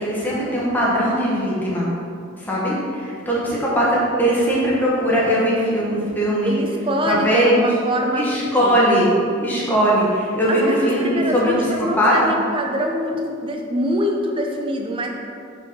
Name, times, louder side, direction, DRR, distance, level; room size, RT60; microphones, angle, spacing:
voice 1, 0.0-1.9 2.4-6.6 7.1-7.7 8.2-9.1 9.4-12.3, equal, 10° left, -6 dB, 1.1 m, -20 dB
voice 2, 6.5-8.8 10.5-15.1, equal, 25° right, 2 dB, 0.5 m, -24 dB
5.3 x 4.1 x 5.4 m, 2.4 s
head